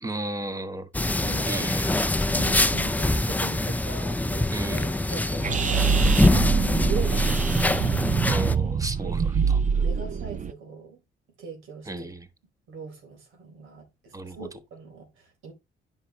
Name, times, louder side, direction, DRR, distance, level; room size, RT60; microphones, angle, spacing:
voice 1, 0.0-0.9 1.5-2.1 4.5-5.0 8.3-9.6 11.8-12.3 14.1-14.5, right 1 dB, 15° right, 1.4 m, -34 dB
sound 1, 0.9-8.6, left 2 dB, 10° left, 0.5 m, -24 dB
voice 2, 1.2-1.7 2.3-4.7 5.1-8.0 9.0-9.2 9.8-11.0 11.4-12.1 12.7-15.5, right 5 dB, 85° right, 4.2 m, -40 dB
sound 2, 5.4-10.5, right 6 dB, 40° right, 0.7 m, -24 dB
9.5 x 5.7 x 3.1 m
cardioid pair, 90°, 20 cm